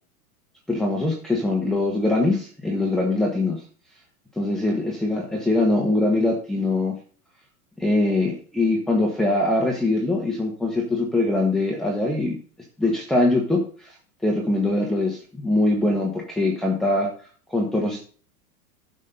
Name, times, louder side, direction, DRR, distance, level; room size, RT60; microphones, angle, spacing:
voice 1, 0.7-3.6 4.4-7.0 7.8-12.4 12.8-13.9 14.2-18.0, left 2 dB, ahead, -2 dB, 1.5 m, -23 dB
11.0 x 6.5 x 3.9 m, 0.44 s
hypercardioid pair, 120°, 45 cm